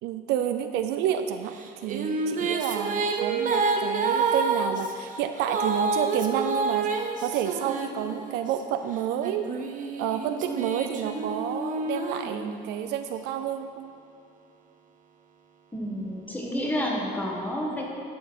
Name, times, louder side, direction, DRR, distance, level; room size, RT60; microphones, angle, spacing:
voice 1, 0.0-9.5 10.0-13.9, right 10 dB, 90° right, 8 dB, 0.4 m, -30 dB
Female singing, 1.6-8.5 9.2-12.9, right 4 dB, 50° right, 0.7 m, -29 dB
voice 2, 15.7-17.8, equal, 10° left, -2 dB, 1.4 m, -30 dB
11.0 x 4.5 x 4.3 m, 2.5 s
cardioid pair, 110°, 17 cm